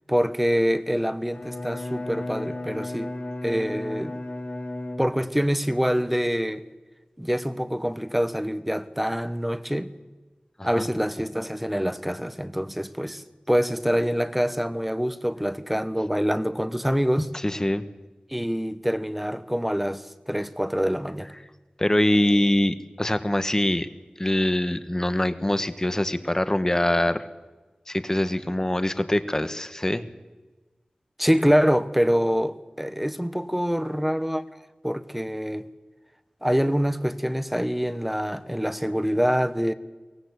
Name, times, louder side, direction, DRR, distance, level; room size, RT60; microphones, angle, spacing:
voice 1, 0.1-3.2 3.4-4.2 5.0-6.6 7.2-9.9 10.6-17.3 18.3-21.3 31.2-34.4 34.8-35.7 36.4-39.7, equal, 5° right, 1.2 m, -25 dB
Bowed string instrument, 1.3-5.5, left 1 dB, 65° left, 4.1 m, -34 dB
voice 2, 17.4-17.8 21.8-23.9 24.2-27.2 27.9-30.1, left 1 dB, 20° left, 1.3 m, -24 dB
23.5 x 18.0 x 8.2 m
wide cardioid pair, 70°, 3 cm